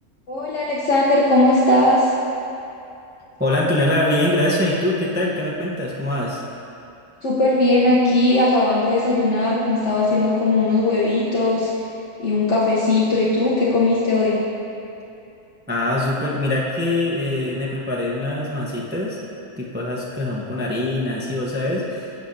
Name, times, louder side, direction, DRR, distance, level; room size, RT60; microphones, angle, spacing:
voice 1, 0.3-2.1 7.2-11.7 12.2-14.4, left 2 dB, 55° left, -7 dB, 1.1 m, -18 dB
voice 2, 3.4-6.4 15.7-19.2 19.6-22.1, left 1 dB, 15° right, -4 dB, 0.4 m, -23 dB
11.0 x 7.2 x 2.6 m, 2.7 s
omnidirectional pair, 1.5 m